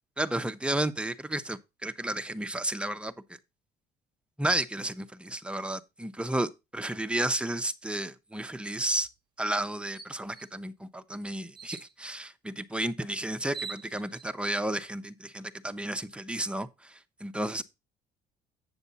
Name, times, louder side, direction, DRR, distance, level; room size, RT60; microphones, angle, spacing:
voice 1, 0.2-3.1 4.4-9.1 9.4-17.6, right 1 dB, 5° right, 0.7 m, -32 dB
sound 1, 8.9-9.1 9.5-9.6 10.0-10.5 11.5-11.9 13.0-13.1 13.4-14.3, right 5 dB, 30° right, 1.1 m, -43 dB
8.4 x 6.9 x 4.0 m
cardioid pair, 110°, 17 cm